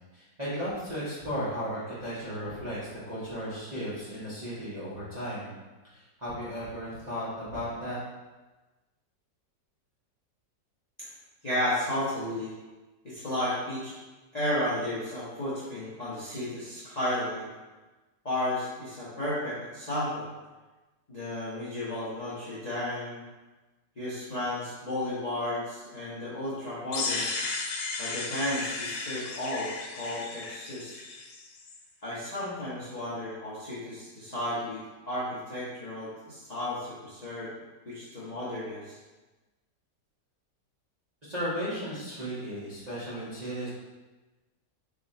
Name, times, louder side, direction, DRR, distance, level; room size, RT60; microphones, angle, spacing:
voice 1, 0.1-2.8 3.1-5.5 5.9-8.0 41.2-43.7, equal, 30° right, -12 dB, 0.8 m, -35 dB
voice 2, 11.4-12.5 13.0-13.9 14.3-17.5 18.2-20.3 21.1-23.2 24.0-27.3 28.0-31.0 32.0-37.5 37.8-39.0, left 1 dB, 35° left, -11 dB, 0.6 m, -33 dB
sound 1, 26.9-31.8, left 3 dB, 70° left, 0.9 m, -34 dB
3.6 x 2.5 x 4.1 m, 1.2 s
omnidirectional pair, 1.9 m